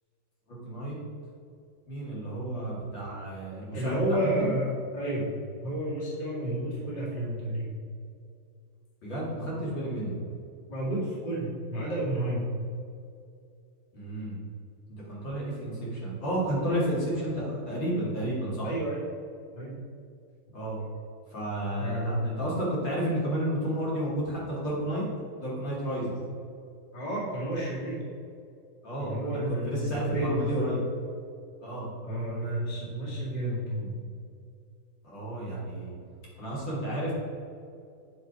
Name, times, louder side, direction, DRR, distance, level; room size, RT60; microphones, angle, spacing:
voice 1, 0.5-1.0 1.9-4.5 9.0-10.2 13.9-14.4 15.1-18.7 20.5-20.8 21.3-25.0 25.4-26.2 28.8-30.8 31.6-31.9 35.0-36.0 36.4-37.1, right 1 dB, 60° left, -6 dB, 2.9 m, -31 dB
voice 2, 3.7-5.3 5.6-7.7 10.7-12.5 18.6-19.0 19.5-19.8 21.8-22.2 26.9-28.0 29.0-30.7 32.0-34.0, right 1 dB, 25° left, -6 dB, 1.9 m, -31 dB
8.7 x 4.5 x 4.9 m, 2.4 s
omnidirectional pair, 2.3 m